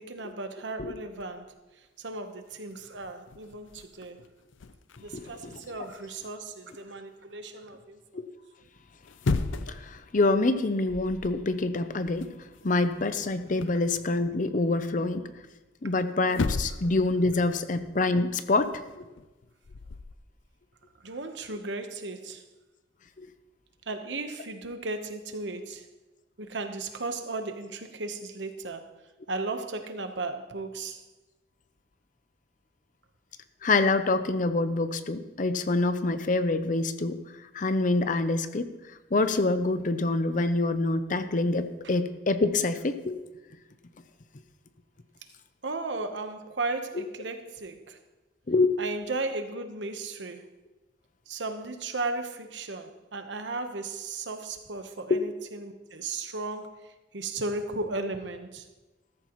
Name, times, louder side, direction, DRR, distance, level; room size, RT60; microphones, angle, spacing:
voice 1, 0.0-4.2 5.0-8.0 21.0-22.4 23.9-25.9 26.4-28.9 29.3-31.0 45.6-48.0 48.8-50.5 51.3-58.7, right 3 dB, 70° right, 7 dB, 1.1 m, -35 dB
sound 1, 1.2-1.5 2.2-2.3 2.5-6.8 8.9-9.9 10.3-10.5 10.9-11.4 11.7-13.9 15.9-16.0 16.3-17.0 17.3-20.1, left 3 dB, 90° left, 0.6 m, -36 dB
voice 2, 5.1-5.6 8.1-8.3 9.7-15.3 15.8-19.0 23.2-23.3 33.6-37.2 37.5-38.7 39.1-43.2 48.5-48.7 55.1-55.2, left 2 dB, 45° left, 11 dB, 0.6 m, -26 dB
14.0 x 14.0 x 3.1 m, 1.1 s
head